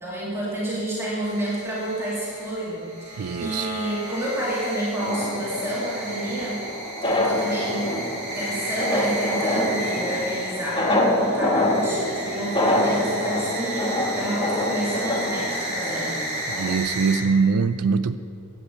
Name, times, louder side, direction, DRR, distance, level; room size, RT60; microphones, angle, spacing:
voice 1, 0.0-6.6 7.1-8.0 8.3-16.3, right 1 dB, 10° right, -8 dB, 2.5 m, -29 dB
sound 1, 1.2-17.2, equal, 35° right, 2.8 m, -33 dB
voice 2, 3.2-3.7 16.6-18.2, right 5 dB, 85° right, 11 dB, 0.4 m, -22 dB
sound 2, 5.0-16.8, left 1 dB, 25° left, 1.2 m, -26 dB
10.5 x 8.6 x 8.2 m, 2.5 s
head